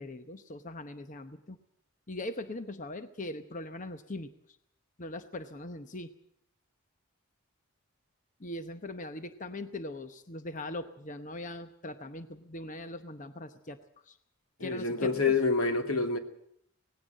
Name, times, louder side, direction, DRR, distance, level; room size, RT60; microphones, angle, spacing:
voice 1, 0.0-1.6 2.1-4.3 5.0-6.1 8.4-13.8 14.0-14.2 14.6-15.4, left 1 dB, 35° left, 10 dB, 0.9 m, -40 dB
voice 2, 14.6-16.2, left 4 dB, 85° left, 6 dB, 2.4 m, -27 dB
18.5 x 16.5 x 9.0 m, 0.69 s
head